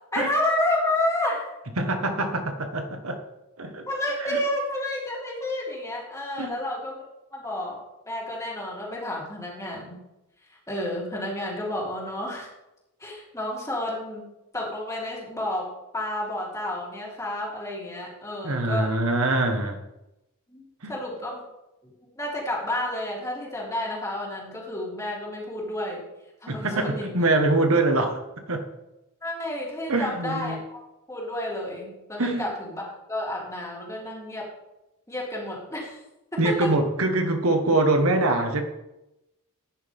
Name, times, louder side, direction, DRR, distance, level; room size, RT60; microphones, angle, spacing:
voice 1, 0.1-1.5 3.9-7.0 7.3-7.8 8.1-10.0 10.7-12.5 13.0-14.3 14.5-15.7 15.9-18.9 20.5-21.4 21.8-26.0 26.4-27.1 29.2-30.8 31.1-34.5 35.1-36.0 36.3-36.7, left 1 dB, 15° left, -4 dB, 3.4 m, -30 dB
voice 2, 1.8-3.2 3.6-3.9 4.2-4.4 6.4-6.5 18.4-19.8 20.8-20.9 26.5-28.2 28.5-28.6 29.9-30.6 32.2-32.5 36.4-38.6, right 2 dB, 80° right, 5 dB, 1.5 m, -24 dB
15.0 x 10.0 x 3.7 m, 0.94 s
head